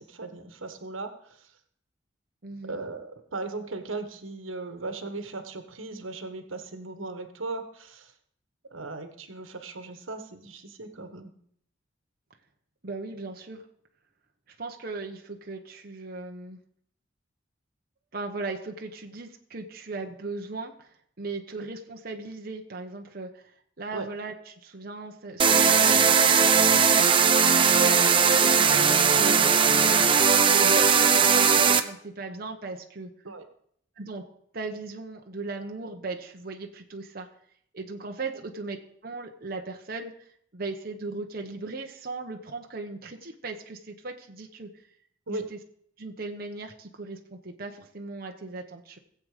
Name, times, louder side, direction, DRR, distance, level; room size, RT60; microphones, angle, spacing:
voice 1, 0.0-1.6 2.6-8.1 8.7-11.3 23.9-24.1 27.7-27.9 33.2-33.5 38.3-38.4 45.3-45.5, right 3 dB, 90° right, 7 dB, 1.5 m, -37 dB
voice 2, 2.4-2.8 12.8-13.6 14.5-16.6 18.1-20.9 21.2-23.5 23.8-27.1 27.7-33.1 34.0-34.3 34.5-37.3 37.7-38.8 39.0-40.1 40.5-44.7 45.3-45.6 46.0-49.0, right 3 dB, 50° right, 2 dB, 1.1 m, -37 dB
sound 1, 25.4-31.8, right 6 dB, 25° right, 0.7 m, -19 dB
19.0 x 7.9 x 5.1 m, 0.66 s
head